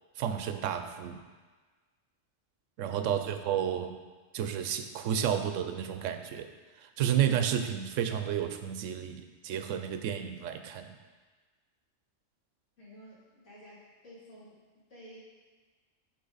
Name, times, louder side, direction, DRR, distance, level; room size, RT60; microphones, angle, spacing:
voice 1, 0.2-1.2 2.8-3.9 4.3-6.5 6.8-10.9, right 9 dB, 80° right, 8 dB, 0.9 m, -31 dB
voice 2, 12.8-14.6 14.9-15.2, equal, 70° left, -9 dB, 2.9 m, -52 dB
6.5 x 6.1 x 4.0 m, 1.4 s
omnidirectional pair, 1.3 m